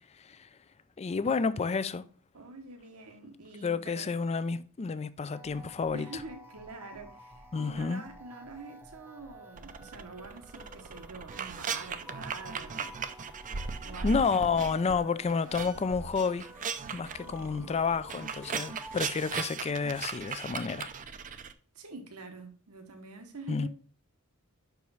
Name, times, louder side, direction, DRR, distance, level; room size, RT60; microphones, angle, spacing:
voice 1, 0.2-0.5 1.0-2.0 3.6-6.1 7.5-8.0 14.0-16.5 16.9-20.9 23.5-23.7, left 5 dB, 30° left, 0.4 m, -30 dB
voice 2, 2.3-4.1 5.9-12.9 13.8-14.2 17.2-17.8 21.7-23.7, right 3 dB, 85° right, 1.1 m, -46 dB
sound 1, 5.3-19.4, equal, 10° right, 0.8 m, -51 dB
sound 2, 9.6-15.0 15.3-21.5, right 5 dB, 35° right, 0.5 m, -38 dB
5.8 x 4.7 x 5.4 m
head